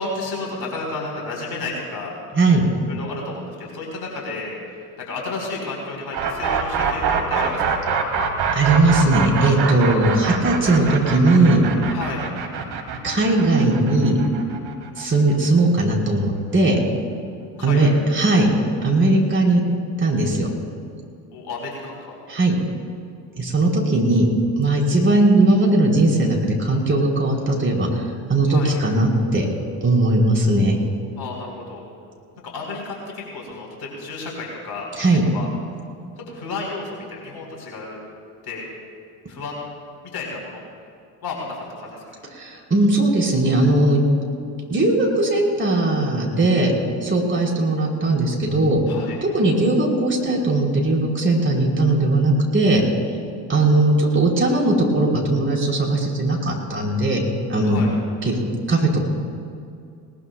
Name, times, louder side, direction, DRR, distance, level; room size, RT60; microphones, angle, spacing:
voice 1, 0.0-2.1 2.9-7.9 11.9-12.2 17.6-17.9 21.3-22.2 28.5-28.8 31.2-31.8 32.4-34.9 35.3-35.5 36.3-38.0 38.4-38.6 39.3-39.6 40.1-40.6 41.2-42.1 48.9-49.2 57.6-57.9, left 3 dB, 50° left, -1 dB, 4.1 m, -32 dB
voice 2, 2.3-2.7 8.5-11.6 13.0-14.2 15.0-16.8 17.6-18.5 18.8-19.6 20.0-20.5 22.3-22.6 23.4-24.3 24.6-29.5 29.8-30.8 35.0-35.2 42.3-44.0 44.7-46.7 47.0-48.8 49.2-52.8 53.5-57.2 57.5-57.8 58.2-58.4 58.7-59.0, right 2 dB, 25° right, -2 dB, 4.3 m, -18 dB
sound 1, 6.1-16.0, right 6 dB, 50° right, 2.0 m, -25 dB
20.5 x 19.5 x 2.3 m, 2.3 s
hypercardioid pair, 55°, 49 cm